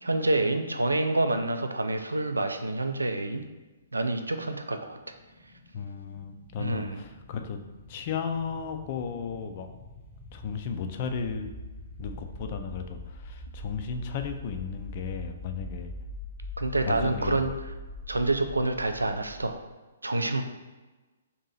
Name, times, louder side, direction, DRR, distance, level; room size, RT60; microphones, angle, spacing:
voice 1, 0.0-3.4 3.9-5.0 6.6-7.0 16.6-17.5 18.1-19.6 20.0-20.4, right 2 dB, 80° right, 7 dB, 0.3 m, -27 dB
sound 1, 3.7-19.6, left 1 dB, 5° left, 0.7 m, -43 dB
voice 2, 5.7-7.6 7.9-9.7 10.3-11.5 12.0-15.9 16.8-17.5, left 6 dB, 40° left, 6 dB, 0.4 m, -34 dB
2.8 x 2.6 x 4.0 m, 1.2 s
figure-of-eight pair, 125°, 0 cm